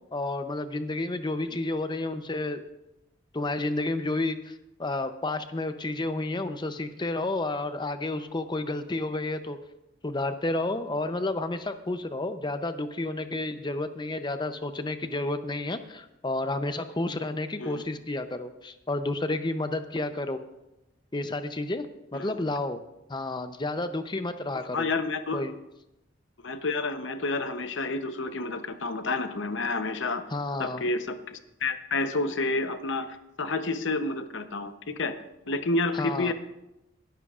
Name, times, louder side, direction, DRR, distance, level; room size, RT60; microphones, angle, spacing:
voice 1, 0.1-2.6 3.3-9.6 10.0-20.4 21.1-22.8 23.1-24.9 25.3-25.5 30.3-30.8 35.9-36.3, left 2 dB, 25° left, 9 dB, 0.7 m, -31 dB
voice 2, 24.7-25.5 26.4-30.2 30.6-35.2 35.5-36.3, left 3 dB, 65° left, 9 dB, 0.9 m, -30 dB
22.0 x 11.5 x 2.5 m, 0.93 s
head